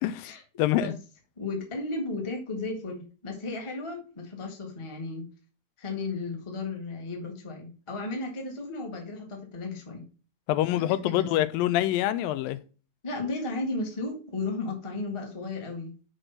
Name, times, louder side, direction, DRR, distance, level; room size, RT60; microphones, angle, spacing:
voice 1, 0.0-0.3 0.6-0.9 10.5-12.6, left 14 dB, 90° left, 2.4 m, -25 dB
voice 2, 1.4-5.2 5.8-10.0 10.7-11.3 13.0-15.9, left 3 dB, 20° left, 0.8 m, -34 dB
6.3 x 5.3 x 5.7 m
omnidirectional pair, 4.0 m